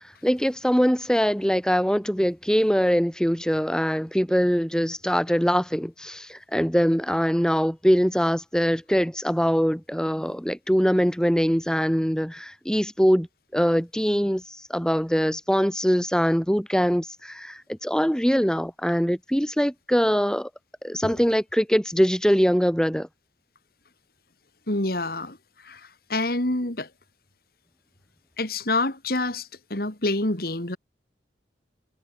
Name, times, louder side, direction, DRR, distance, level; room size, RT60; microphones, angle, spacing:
voice 1, 0.2-13.3 13.5-20.5 20.8-23.1, equal, 5° left, 5.7 m, -23 dB
voice 2, 24.7-25.4 25.6-26.9 28.4-30.8, left 2 dB, 55° left, 2.7 m, -27 dB
head